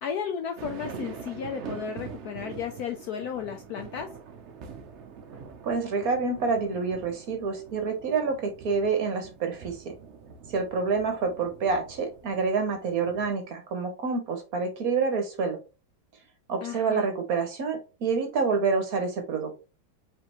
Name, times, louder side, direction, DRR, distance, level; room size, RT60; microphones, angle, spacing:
voice 1, 0.0-4.1 16.6-17.1, left 7 dB, 75° left, 5 dB, 0.9 m, -34 dB
sound 1, 0.6-13.3, right 6 dB, 80° right, 0.6 m, -44 dB
voice 2, 5.6-9.9 10.5-15.6 16.5-19.5, right 4 dB, 55° right, 4 dB, 1.2 m, -27 dB
5.0 x 3.4 x 3.0 m, 0.31 s
omnidirectional pair, 2.1 m